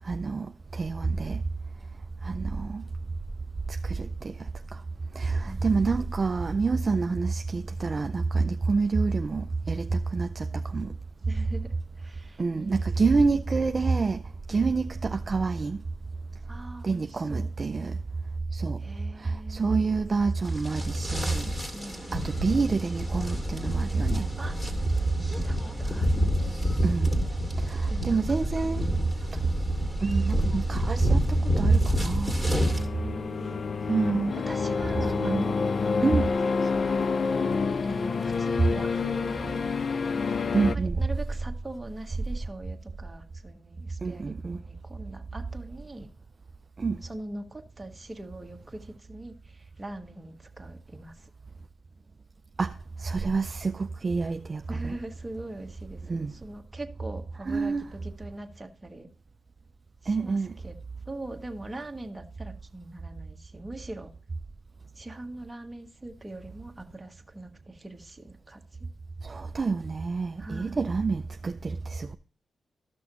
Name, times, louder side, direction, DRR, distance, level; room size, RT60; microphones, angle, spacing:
voice 1, 0.0-1.4 2.2-2.8 3.7-4.8 5.1-10.9 12.4-14.2 14.5-15.8 16.8-18.0 18.5-18.8 19.2-21.5 22.1-24.3 26.8-27.1 27.6-28.9 29.3-29.4 30.0-32.4 33.9-34.3 35.2-35.5 36.0-36.3 40.5-41.0 44.0-44.6 46.8-47.0 52.6-54.9 56.1-56.3 57.5-57.8 60.1-60.5 69.2-72.2, right 4 dB, 35° right, 0.4 m, -27 dB
voice 2, 5.4-5.8 11.3-13.4 14.5-14.7 16.5-17.5 18.8-20.0 21.7-22.6 24.4-24.8 25.2-26.7 27.9-29.3 31.4-31.5 32.7-35.8 36.6-37.0 37.8-39.8 40.6-46.1 47.0-51.3 54.7-59.1 60.0-60.8 61.0-64.1 64.9-68.6 70.4-70.9, right 1 dB, 15° right, 1.4 m, -42 dB
sound 1, 20.5-32.8, equal, 20° left, 2.4 m, -29 dB
sound 2, 32.6-40.7, left 5 dB, 50° left, 0.3 m, -28 dB
13.0 x 6.2 x 2.9 m
cardioid pair, 90°, 0 cm